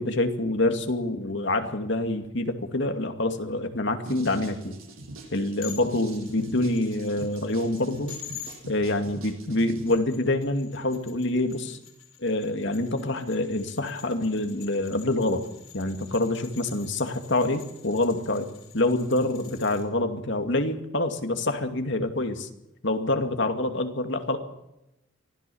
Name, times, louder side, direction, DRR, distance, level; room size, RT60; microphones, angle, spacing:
voice 1, 0.0-4.8 5.3-8.2 8.7-11.8 12.2-15.4 15.7-18.5 18.7-22.5 22.8-24.4, left 2 dB, 60° left, 6 dB, 2.4 m, -26 dB
sound 1, 4.1-9.9, right 2 dB, 85° right, 7.3 m, -43 dB
sound 2, 5.6-8.6 9.7-19.8, left 10 dB, 80° left, 5.2 m, -47 dB
24.0 x 16.5 x 7.1 m, 0.88 s
head